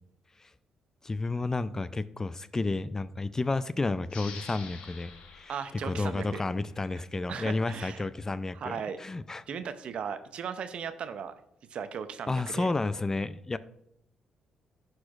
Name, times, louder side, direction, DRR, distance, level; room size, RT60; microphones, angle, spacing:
voice 1, 1.0-5.5 5.8-9.4 12.3-13.6, left 3 dB, 25° left, 16 dB, 0.3 m, -31 dB
sound 1, 4.1-7.3, left 5 dB, 70° left, 1.0 m, -48 dB
voice 2, 5.5-6.4 7.3-8.0 8.5-9.0 9.5-11.3 11.7-12.7, right 7 dB, 60° right, 11 dB, 0.5 m, -37 dB
11.0 x 4.4 x 2.4 m, 0.76 s
supercardioid pair, 55°, 2 cm